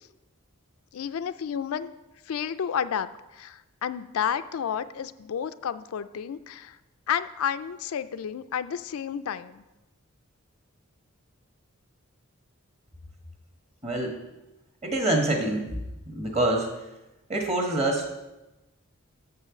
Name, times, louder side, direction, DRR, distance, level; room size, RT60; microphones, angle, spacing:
voice 1, 0.9-1.9 2.3-6.8 7.1-9.6, left 8 dB, 80° left, 12 dB, 0.4 m, -31 dB
voice 2, 13.8-14.2 14.8-15.6 16.1-16.7 17.3-18.1, right 2 dB, 30° right, 1 dB, 1.3 m, -25 dB
6.7 x 5.5 x 7.0 m, 1.0 s
head